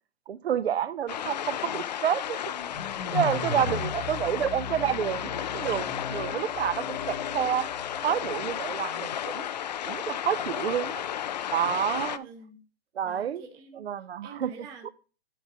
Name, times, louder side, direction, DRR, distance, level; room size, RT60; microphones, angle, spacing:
voice 1, 0.3-2.5 3.1-7.7 8.0-9.4 9.9-11.0 11.5-12.3 12.9-13.4 13.7-14.5 14.8-14.9, right 9 dB, 85° right, 0.7 m, -29 dB
sound 1, 1.1-12.2, left 10 dB, 45° left, 0.4 m, -33 dB
sound 2, 2.5-8.8, left 4 dB, 80° left, 1.3 m, -37 dB
voice 2, 3.3-4.0 11.9-12.6 13.0-13.9 14.2-14.9, right 4 dB, 10° right, 0.7 m, -47 dB
9.8 x 3.9 x 4.9 m
hypercardioid pair, 160°, 31 cm